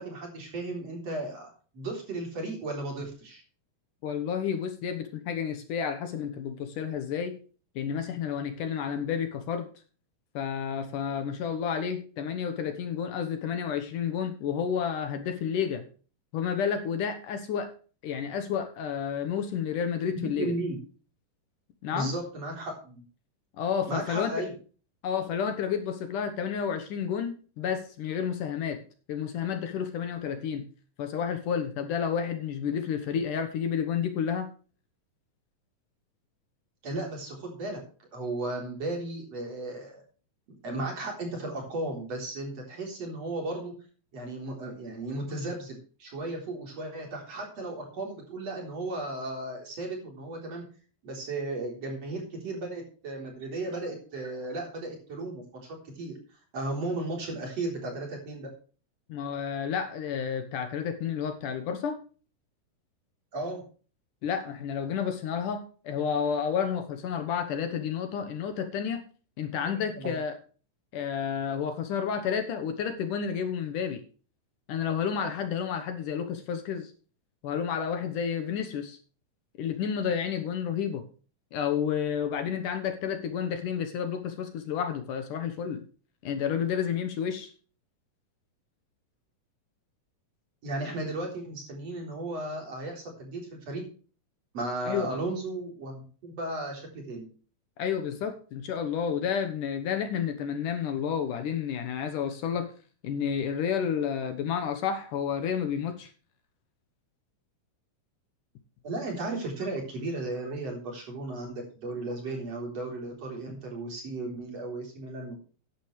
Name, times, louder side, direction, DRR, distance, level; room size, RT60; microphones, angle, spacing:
voice 1, 0.0-3.4 20.1-20.8 21.9-23.0 23.9-24.5 36.8-40.0 40.6-43.7 44.1-50.6 51.0-56.2 56.5-58.5 63.3-63.6 69.5-70.2 90.6-93.8 94.5-97.3 108.8-115.4, right 2 dB, 45° right, 4.8 m, -35 dB
voice 2, 4.0-7.4 7.8-9.7 10.3-15.8 16.3-17.7 18.0-20.5 21.8-22.1 23.6-24.4 25.0-28.8 29.1-30.7 31.0-34.5 59.1-62.0 64.2-69.0 69.4-70.3 70.9-74.0 74.7-76.9 77.4-79.0 79.6-81.0 81.5-85.8 86.2-87.5 94.9-95.1 97.8-102.7 103.0-106.1, left 7 dB, 70° left, 2.6 m, -30 dB
14.0 x 10.5 x 3.3 m
omnidirectional pair, 4.1 m